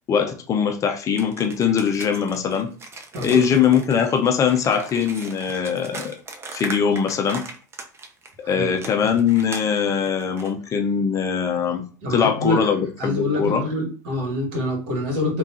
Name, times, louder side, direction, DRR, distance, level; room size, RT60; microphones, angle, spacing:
voice 1, 0.1-2.7 3.2-6.1 6.5-7.4 8.5-11.8 12.1-13.7, left 7 dB, 35° left, 0.5 m, -21 dB
sound 1, 1.1-8.3 8.8-10.5, right 3 dB, 25° right, 0.6 m, -38 dB
voice 2, 12.0-12.6 13.0-15.4, left 1 dB, 60° right, 1.4 m, -26 dB
3.5 x 2.3 x 2.6 m
hypercardioid pair, 75°, 10 cm